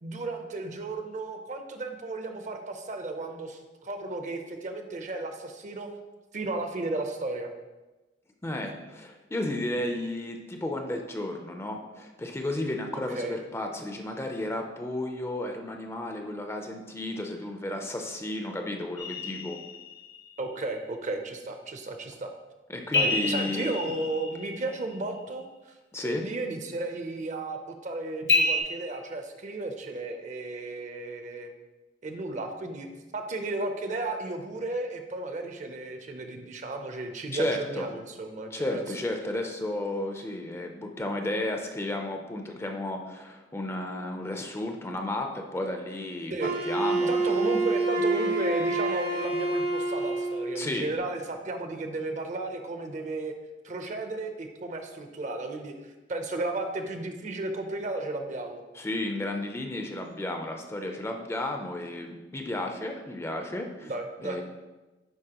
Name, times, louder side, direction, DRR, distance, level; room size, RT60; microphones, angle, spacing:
voice 1, 0.0-5.9 6.3-7.5 13.1-13.4 20.4-22.3 22.9-25.7 26.0-31.5 32.0-32.9 33.1-38.8 46.3-46.5 47.1-53.3 53.6-58.6 63.8-64.4, right 2 dB, 40° right, 6 dB, 0.6 m, -34 dB
voice 2, 8.4-19.6 22.7-23.7 25.9-26.3 37.3-37.9 38.5-47.1 50.5-50.9 58.7-63.9 64.2-64.4, left 1 dB, 15° left, 3 dB, 0.5 m, -33 dB
sound 1, 19.0-20.3 22.9-24.9 28.3-28.6, left 2 dB, 85° left, 1.6 m, -28 dB
Wind instrument woodwind instrument, 46.4-50.5, right 2 dB, 65° right, 0.9 m, -27 dB
9.9 x 4.0 x 2.9 m, 1.1 s
head